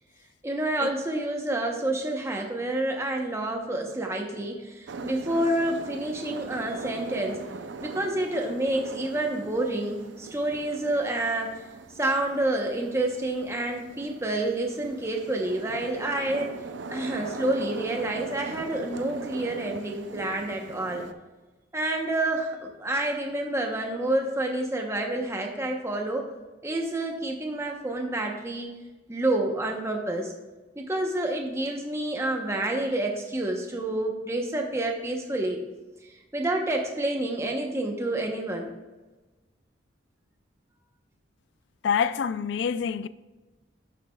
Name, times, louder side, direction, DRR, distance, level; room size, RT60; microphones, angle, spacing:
voice 1, 0.4-7.4 7.8-11.7 11.9-16.5 16.9-21.0 21.7-26.3 26.6-28.7 29.1-30.3 30.8-35.7 36.3-38.7, right 1 dB, 15° right, 0.8 m, -28 dB
sound 1, 4.9-21.1, right 3 dB, 75° right, 0.5 m, -40 dB
voice 2, 41.8-43.1, left 7 dB, 65° left, 0.3 m, -26 dB
11.5 x 7.2 x 2.3 m
head